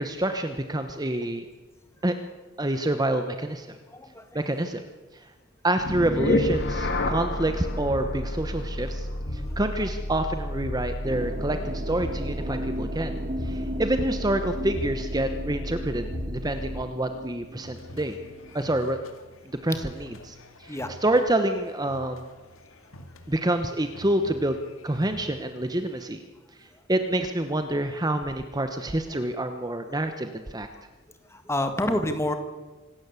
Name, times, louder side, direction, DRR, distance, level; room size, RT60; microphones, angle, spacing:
voice 1, 0.0-1.5 2.0-2.2 2.6-3.8 4.3-4.8 5.1-5.2 5.6-9.1 9.3-18.2 18.5-19.0 19.4-22.3 23.3-24.6 24.8-26.2 26.6-30.7, right 1 dB, 20° right, 8 dB, 1.0 m, -27 dB
voice 2, 3.9-4.2 9.3-9.6 12.5-12.6 20.7-20.9 31.3-32.3, left 1 dB, 15° left, 7 dB, 1.9 m, -28 dB
sound 1, 5.8-17.0, left 1 dB, 55° left, 2.3 m, -31 dB
sound 2, 11.0-18.6, equal, 40° right, 1.4 m, -37 dB
sound 3, 17.6-26.0, left 1 dB, 80° left, 2.1 m, -48 dB
26.0 x 12.5 x 8.3 m, 1.2 s
head